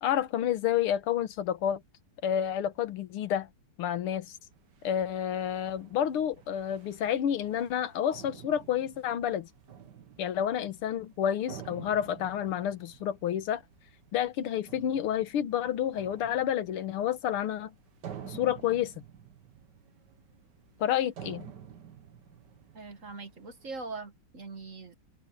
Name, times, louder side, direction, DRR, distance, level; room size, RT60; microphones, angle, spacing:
voice 1, 0.0-1.8 2.2-3.5 3.8-4.3 4.8-9.5 10.2-13.6 14.1-17.7 18.3-18.9 20.8-21.5, left 10 dB, 85° left, 2.0 m, -29 dB
sound 1, 4.0-23.9, right 8 dB, 55° right, 1.8 m, -50 dB
voice 2, 22.7-24.9, right 3 dB, 40° right, 1.8 m, -42 dB
omnidirectional pair, 2.3 m